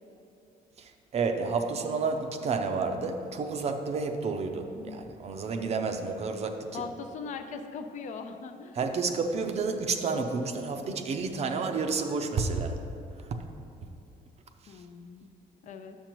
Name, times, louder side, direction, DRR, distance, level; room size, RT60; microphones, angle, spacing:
voice 1, 0.8-6.8 8.7-12.8 13.2-13.4 14.6-14.8, right 4 dB, 40° right, 5 dB, 0.5 m, -30 dB
voice 2, 4.8-5.1 6.7-8.8 14.7-15.3 15.6-16.0, left 5 dB, 50° left, 7 dB, 0.5 m, -40 dB
10.0 x 6.8 x 3.0 m, 2.6 s
cardioid pair, 155°, 16 cm